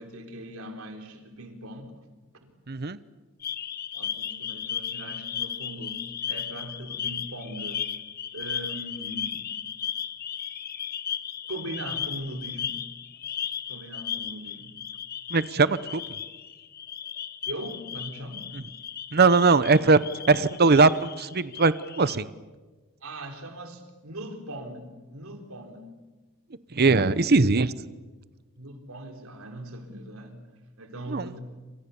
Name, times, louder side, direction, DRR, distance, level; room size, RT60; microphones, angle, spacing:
voice 1, 0.0-1.9 2.4-2.5 3.9-6.0 6.3-7.9 8.3-9.7 11.5-12.8 13.7-14.8 17.5-18.5 23.0-25.8 28.6-31.4, right 1 dB, 85° right, 5 dB, 4.1 m, -40 dB
voice 2, 2.7-3.0 15.3-16.0 19.1-20.0 20.3-22.3 26.7-27.7 31.1-31.3, right 4 dB, 50° right, 15 dB, 0.8 m, -20 dB
sound 1, 3.4-22.2, left 9 dB, 45° left, 1.2 m, -35 dB
28.0 x 27.5 x 7.1 m, 1.3 s
head